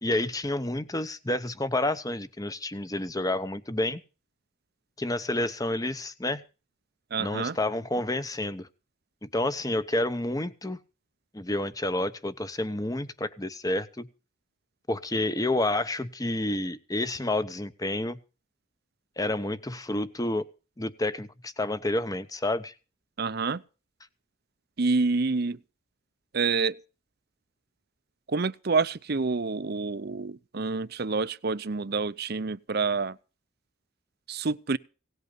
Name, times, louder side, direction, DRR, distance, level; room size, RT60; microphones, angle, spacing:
voice 1, 0.0-4.0 5.0-6.4 7.2-8.7 9.2-10.8 11.3-14.1 14.9-18.2 19.2-20.5 20.8-22.7, left 1 dB, 15° left, 0.9 m, -29 dB
voice 2, 7.1-7.6 23.2-23.6 24.8-25.6 26.3-26.8 28.3-33.2 34.3-34.8, right 4 dB, 50° right, 0.6 m, -28 dB
18.0 x 8.0 x 6.8 m
head